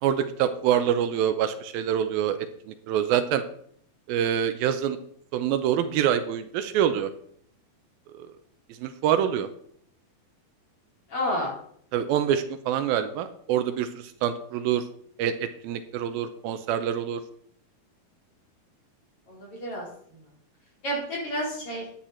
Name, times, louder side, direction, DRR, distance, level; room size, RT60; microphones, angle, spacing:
voice 1, 0.0-3.4 4.1-5.0 5.3-7.1 8.2-8.3 8.8-9.5 11.9-14.8 15.2-17.2, right 9 dB, 80° right, 10 dB, 2.5 m, -26 dB
voice 2, 11.1-11.5 19.3-19.9 20.8-21.9, equal, 35° left, -4 dB, 5.2 m, -30 dB
11.5 x 9.9 x 4.4 m, 0.65 s
omnidirectional pair, 4.3 m